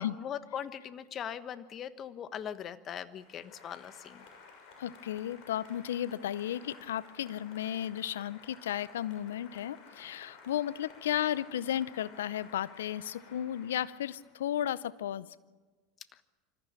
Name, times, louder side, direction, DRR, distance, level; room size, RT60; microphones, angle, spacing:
voice 1, 0.0-4.2, left 9 dB, 40° left, 13 dB, 1.3 m, -40 dB
Applause, 3.1-14.6, left 4 dB, 60° left, 6.4 m, -55 dB
voice 2, 4.8-15.3, left 11 dB, 80° left, 19 dB, 0.6 m, -34 dB
25.5 x 14.5 x 8.9 m, 1.3 s
hypercardioid pair, 85°, 0 cm